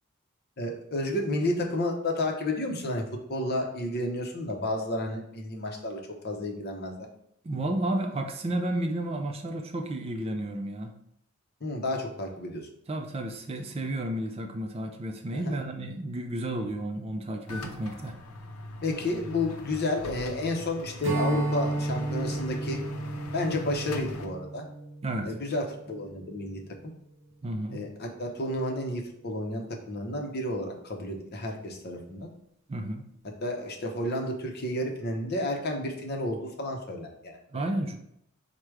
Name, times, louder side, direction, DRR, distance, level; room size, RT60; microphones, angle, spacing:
voice 1, 0.6-6.9 11.6-12.6 15.3-15.6 18.8-22.8 23.3-24.6 25.2-26.6 27.7-32.3 33.4-37.6, left 1 dB, 45° left, 2 dB, 0.7 m, -31 dB
voice 2, 7.4-10.9 12.9-18.2 25.0-25.4 27.4-27.8 32.7-33.1 37.5-38.0, right 1 dB, 25° right, 4 dB, 0.4 m, -32 dB
sound 1, 17.5-24.3, left 1 dB, 85° left, 0.6 m, -41 dB
Strum, 21.0-26.5, right 2 dB, 60° right, 0.7 m, -33 dB
4.7 x 2.2 x 4.6 m, 0.76 s
head